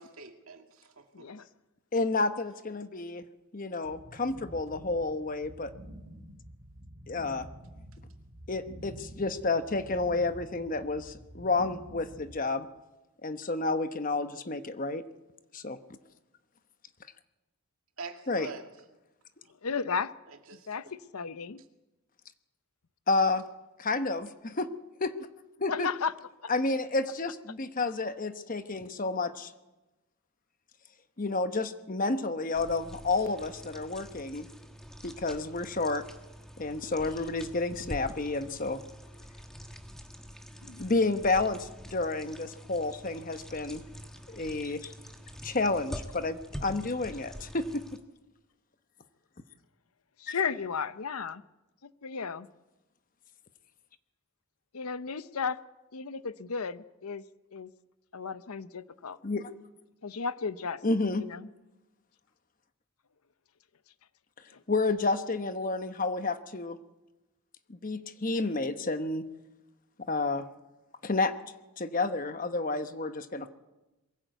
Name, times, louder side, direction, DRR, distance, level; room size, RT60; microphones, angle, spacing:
voice 1, 0.0-1.3 18.0-18.7 20.5-20.7, right 4 dB, 75° right, 4 dB, 2.1 m, -45 dB
voice 2, 1.1-1.5 19.6-20.1 20.5-21.6 25.7-26.1 37.8-37.9 40.6-40.9 50.2-51.4 51.8-52.5 54.7-55.6 55.9-57.2 57.5-57.7 58.1-59.2 60.0-60.8 61.2-61.5 64.5-64.6, left 5 dB, 90° left, 14 dB, 0.8 m, -34 dB
voice 3, 1.9-3.2 3.5-5.7 7.1-7.5 8.5-12.7 13.2-15.0 15.5-15.8 18.3-18.5 23.1-23.4 23.8-24.7 25.0-25.1 25.6-25.9 26.5-29.5 31.2-34.5 35.0-36.0 36.6-38.8 40.8-43.8 44.3-44.9 45.4-48.0 50.3-50.4 59.2-59.5 60.8-61.3 64.7-66.8 67.7-69.2 70.0-70.5 71.0-71.3 71.8-73.5, left 3 dB, 40° left, 10 dB, 1.0 m, -30 dB
sound 1, 3.8-12.4, equal, 45° right, 1.9 m, -48 dB
sound 2, 32.5-48.0, equal, ahead, 1.3 m, -46 dB
22.5 x 15.5 x 8.1 m, 1.0 s
head